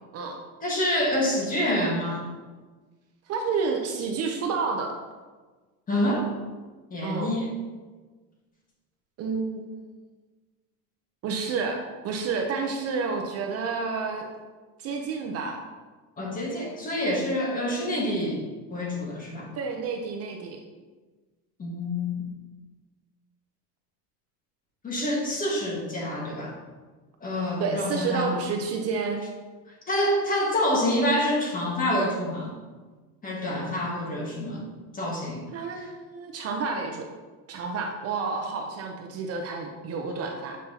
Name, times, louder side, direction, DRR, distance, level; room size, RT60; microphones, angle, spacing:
voice 1, 0.6-2.2 5.9-6.3 6.9-7.5 16.2-18.4 18.7-19.5 21.6-22.1 24.8-26.5 27.2-28.3 29.9-32.5 33.2-34.6 34.9-35.5 35.7-35.8, left 1 dB, 20° left, -2 dB, 1.6 m, -27 dB
voice 2, 3.3-4.9 7.0-7.4 9.2-9.7 11.2-14.3 14.8-15.6 19.6-20.6 27.6-29.2 35.5-37.1 37.5-40.6, right 4 dB, 40° right, 3 dB, 0.7 m, -30 dB
7.3 x 5.8 x 2.8 m, 1.3 s
cardioid pair, 145°, 37 cm